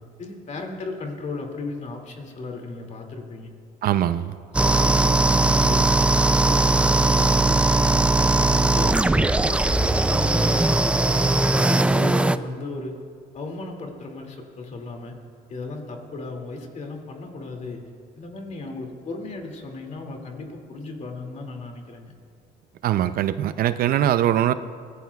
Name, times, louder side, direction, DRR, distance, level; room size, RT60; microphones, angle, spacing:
voice 1, 0.2-3.5 4.5-5.9 6.3-11.2 11.6-13.0 13.3-15.2 15.5-17.9 18.1-22.1, left 3 dB, 45° left, 2 dB, 2.3 m, -35 dB
voice 2, 3.8-4.3 22.8-24.5, right 11 dB, 60° right, 13 dB, 0.5 m, -21 dB
sound 1, 4.5-12.4, right 2 dB, 5° right, 0.3 m, -19 dB
24.0 x 17.5 x 2.3 m, 2.1 s
cardioid pair, 110°, 17 cm